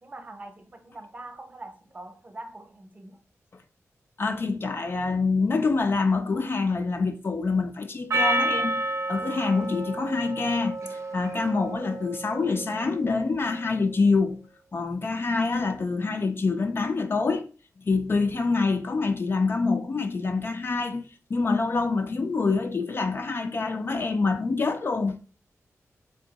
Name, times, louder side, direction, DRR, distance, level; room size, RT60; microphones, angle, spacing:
voice 1, 0.0-3.2, right 2 dB, 30° right, 0.7 m, -43 dB
voice 2, 4.2-8.8 9.1-14.5 14.7-17.4 17.8-25.2, left 4 dB, 45° left, 0.4 m, -26 dB
Percussion, 8.1-12.7, right 2 dB, 60° right, 0.6 m, -30 dB
3.5 x 2.8 x 3.9 m
wide cardioid pair, 130°, 6 cm